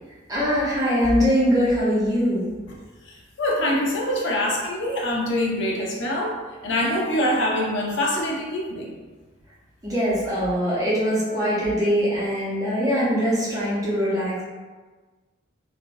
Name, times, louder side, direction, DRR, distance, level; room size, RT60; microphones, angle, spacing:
voice 1, 0.3-2.5 9.8-14.4, equal, 15° right, -9 dB, 0.8 m, -22 dB
voice 2, 3.1-6.4 6.6-8.9, left 1 dB, 70° left, -2 dB, 0.6 m, -24 dB
3.4 x 2.5 x 2.5 m, 1.3 s
head